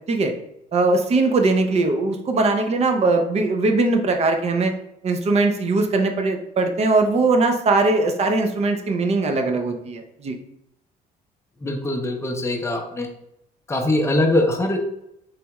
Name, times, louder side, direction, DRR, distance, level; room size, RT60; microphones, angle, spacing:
voice 1, 0.7-4.7 5.0-10.4, right 3 dB, 40° right, 5 dB, 0.6 m, -20 dB
voice 2, 11.6-13.1 13.7-14.8, left 1 dB, 15° left, 3 dB, 0.7 m, -22 dB
3.4 x 3.3 x 3.0 m, 0.80 s
cardioid pair, 110°, 17 cm